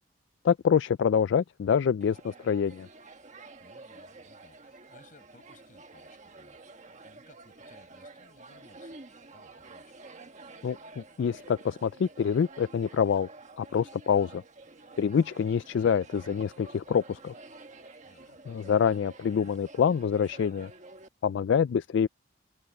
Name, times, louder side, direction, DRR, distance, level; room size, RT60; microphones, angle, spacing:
voice 1, 0.4-2.9 10.6-13.3 13.6-14.4 15.0-17.3 18.5-20.7 21.2-22.1, left 7 dB, 65° left, 0.3 m, -26 dB
sound 1, 2.0-21.1, right 3 dB, 35° right, 1.4 m, -50 dB
voice 2, 3.6-9.0 9.3-9.9 18.0-18.3, left 2 dB, 40° left, 6.8 m, -60 dB
head